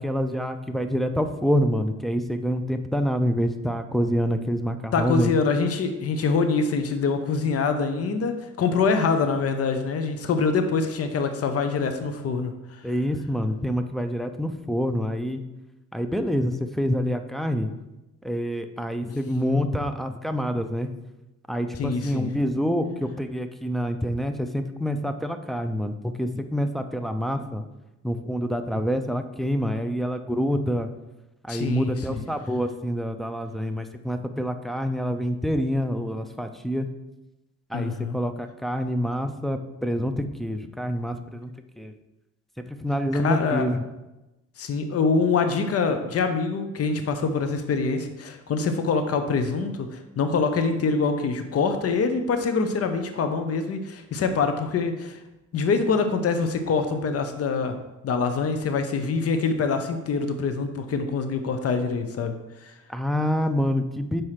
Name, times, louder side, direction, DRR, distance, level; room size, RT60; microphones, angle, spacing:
voice 1, 0.0-5.3 12.8-15.4 15.9-17.7 18.2-20.9 21.5-27.6 28.0-30.9 31.4-36.9 37.7-41.5 41.8-42.0 42.7-43.9 62.9-64.2, equal, ahead, 6 dB, 0.5 m, -27 dB
voice 2, 4.9-12.8 21.8-22.3 31.5-32.2 37.7-38.2 43.1-43.6 44.6-55.2 55.5-57.7 58.0-62.3 62.6-62.7, left 4 dB, 50° left, 7 dB, 0.8 m, -25 dB
4.8 x 4.6 x 5.7 m, 0.98 s
cardioid pair, 90°, 30 cm